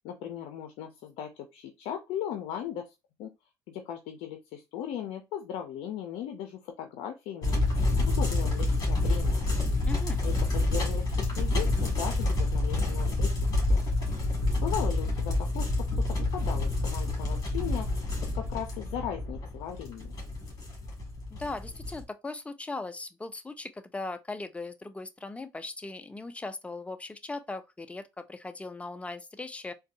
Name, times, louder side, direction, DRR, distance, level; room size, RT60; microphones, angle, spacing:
voice 1, 0.0-2.9 3.2-3.3 3.7-7.6 8.0-9.4 10.2-13.4 13.7-13.9 14.6-15.7 16.0-20.2, left 9 dB, 75° left, 0.5 m, -38 dB
sound 1, 7.4-22.0, left 2 dB, 35° left, 1.8 m, -28 dB
voice 2, 9.9-10.2 21.3-29.7, left 3 dB, 10° left, 0.5 m, -39 dB
4.0 x 2.2 x 2.5 m
supercardioid pair, 95°, 10 cm